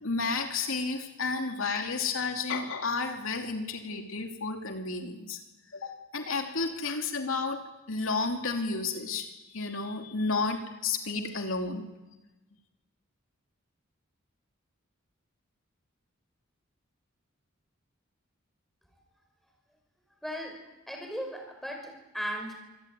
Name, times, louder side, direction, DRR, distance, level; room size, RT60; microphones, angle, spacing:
voice 1, 0.0-5.4 5.7-7.6 7.9-9.3 9.5-11.8, left 4 dB, 80° left, 4 dB, 2.9 m, -31 dB
voice 2, 20.2-20.6 20.9-22.5, equal, ahead, 2 dB, 5.8 m, -37 dB
26.0 x 17.0 x 9.4 m, 1.1 s
head